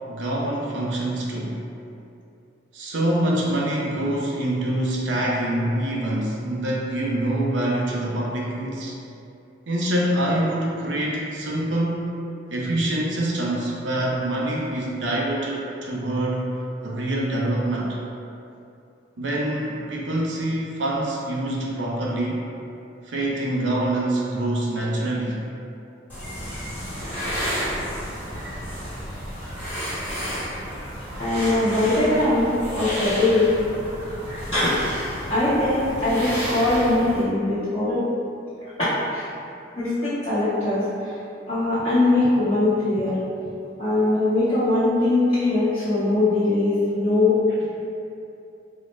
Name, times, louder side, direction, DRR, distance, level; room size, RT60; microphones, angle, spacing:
voice 1, 0.1-1.6 2.7-9.0 9.7-12.2 12.5-16.5 16.8-18.0 19.2-22.4 23.0-25.4, right 1 dB, 80° right, -3 dB, 0.5 m, -25 dB
sound 1, 26.1-37.2, equal, 10° left, 1.0 m, -31 dB
voice 2, 31.2-33.5 34.5-34.8 35.3-38.1 38.8-39.3 39.8-41.1 41.5-43.2 43.8-47.4, left 2 dB, 30° left, -15 dB, 0.7 m, -21 dB
3.9 x 2.1 x 3.1 m, 2.6 s
head